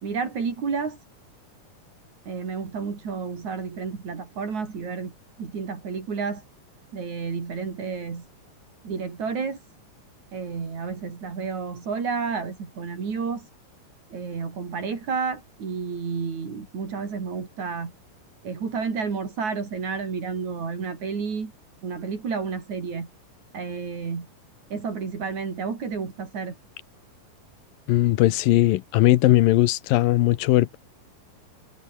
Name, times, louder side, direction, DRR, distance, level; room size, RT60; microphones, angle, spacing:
voice 1, 0.0-1.0 2.3-5.1 5.4-6.4 6.9-8.3 8.8-9.6 10.3-13.5 14.1-17.9 18.4-21.5 21.8-23.1 23.5-24.3 24.7-26.6, right 5 dB, 55° right, 5.4 m, -31 dB
voice 2, 27.9-30.8, left 16 dB, 90° left, 2.7 m, -19 dB
omnidirectional pair, 3.9 m